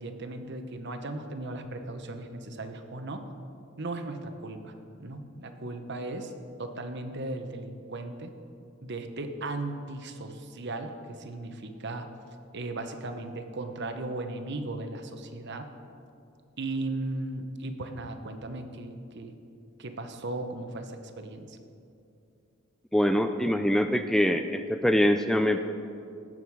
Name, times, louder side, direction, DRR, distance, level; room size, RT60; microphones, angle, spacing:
voice 1, 0.0-3.2 3.8-4.7 5.0-6.3 6.6-8.3 8.8-12.1 12.5-15.7 16.6-19.4 19.8-21.6, right 2 dB, 55° right, 7 dB, 1.0 m, -36 dB
voice 2, 22.9-25.6, equal, ahead, 7 dB, 0.3 m, -24 dB
18.5 x 7.8 x 4.8 m, 2.5 s
head